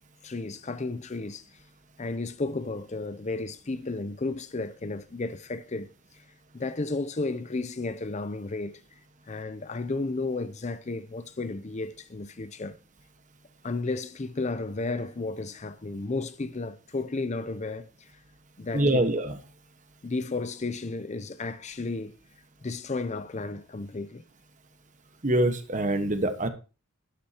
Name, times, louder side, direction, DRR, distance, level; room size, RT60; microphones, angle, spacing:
voice 1, 0.2-1.4 2.0-5.9 6.1-6.2 6.5-8.8 9.3-12.8 13.6-18.1 18.6-19.1 20.0-22.2 22.6-24.2, left 3 dB, 30° left, 0.5 m, -33 dB
voice 2, 18.7-19.4 25.2-26.5, right 1 dB, 35° right, 1.3 m, -24 dB
12.0 x 11.5 x 2.9 m
head